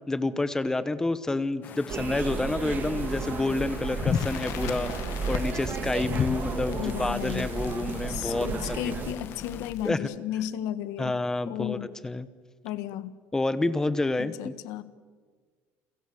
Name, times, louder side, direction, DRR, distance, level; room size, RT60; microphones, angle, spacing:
voice 1, 0.1-4.9 5.3-8.5 8.8-8.9 9.8-10.1 11.0-11.8 12.0-12.3 13.3-14.5, left 2 dB, 10° left, 14 dB, 1.0 m, -28 dB
sound 1, 1.6-9.7, left 8 dB, 35° left, 0.7 m, -36 dB
sound 2, 1.9-9.1, right 6 dB, 35° right, 2.0 m, -33 dB
Crackle, 4.1-9.9, left 10 dB, 55° left, 1.7 m, -42 dB
voice 2, 6.7-7.5 8.1-11.1 11.5-11.9 12.6-13.2 14.2-14.8, left 12 dB, 80° left, 13 dB, 1.6 m, -34 dB
30.0 x 23.0 x 7.1 m, 1.5 s
cardioid pair, 165°, 6 cm